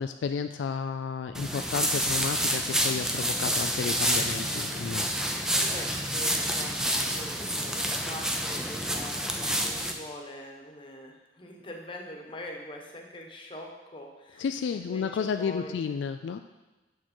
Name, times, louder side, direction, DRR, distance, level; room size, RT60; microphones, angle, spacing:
voice 1, 0.0-5.1 14.4-16.4, left 6 dB, 90° left, 8 dB, 0.3 m, -32 dB
sound 1, 1.3-9.9, equal, 5° right, 0.5 m, -28 dB
voice 2, 5.6-14.4 14.7-15.8, left 1 dB, 30° left, 1 dB, 1.1 m, -43 dB
7.0 x 6.0 x 4.4 m, 1.1 s
head